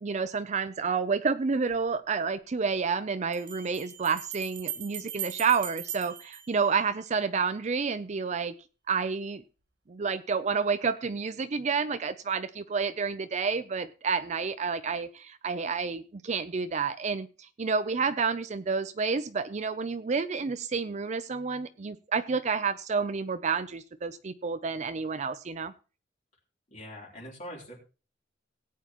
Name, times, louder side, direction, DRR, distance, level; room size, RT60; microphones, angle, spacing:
voice 1, 0.0-8.5 8.9-9.4 9.9-25.7, right 5 dB, 40° right, 12 dB, 0.5 m, -29 dB
Bell, 1.7-1.8 3.3-7.3, right 10 dB, 70° right, 1.4 m, -40 dB
voice 2, 26.7-27.8, equal, 40° left, -3 dB, 3.4 m, -43 dB
17.5 x 9.2 x 3.0 m, 0.34 s
head